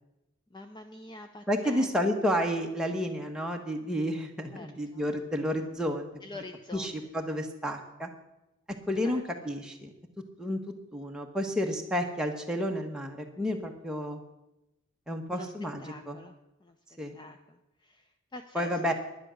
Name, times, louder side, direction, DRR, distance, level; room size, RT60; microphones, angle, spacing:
voice 1, 0.5-1.9 4.5-5.1 6.2-6.9 9.0-9.2 15.3-15.5 15.8-16.3 16.6-16.8 17.1-18.9, left 2 dB, 20° left, 7 dB, 0.6 m, -46 dB
voice 2, 1.5-6.1 6.7-8.1 8.9-9.9 10.4-10.6 10.9-14.2 15.1-16.2 17.0-17.1 18.5-18.9, equal, 5° right, 1 dB, 1.3 m, -31 dB
10.5 x 10.5 x 6.4 m, 0.92 s
head